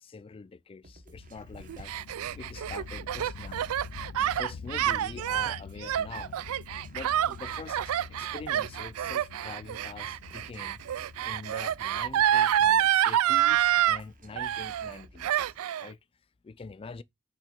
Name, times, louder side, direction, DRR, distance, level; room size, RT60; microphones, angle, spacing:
voice 1, 0.0-1.9 2.3-3.7 4.2-6.4 6.9-10.8 11.2-16.0 16.4-17.0, left 4 dB, 25° left, 0.3 m, -44 dB
sound 1, 0.8-15.6, right 1 dB, 35° right, 1.1 m, -55 dB
sound 2, 1.1-13.5, left 5 dB, 85° left, 0.5 m, -47 dB
Gasp, 1.5-14.0 14.4-15.0 15.2-15.9, right 11 dB, 65° right, 0.3 m, -27 dB
5.8 x 3.2 x 5.2 m
head